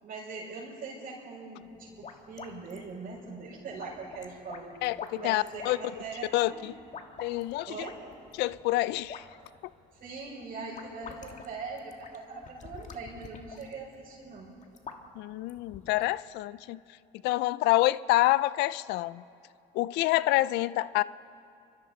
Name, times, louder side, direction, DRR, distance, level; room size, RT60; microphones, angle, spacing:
voice 1, 0.0-4.7 5.1-6.7 7.7-8.0 10.0-14.6, right 4 dB, 60° right, -8 dB, 5.7 m, -41 dB
sound 1, 1.6-16.2, left 5 dB, 45° left, 1.6 m, -49 dB
voice 2, 4.8-5.8 6.3-6.7 7.2-7.8 8.4-9.2 15.2-16.8 17.2-19.2 19.7-21.0, left 17 dB, 90° left, 18 dB, 0.4 m, -27 dB
29.0 x 24.5 x 4.3 m, 2.6 s
cardioid pair, 110°, 17 cm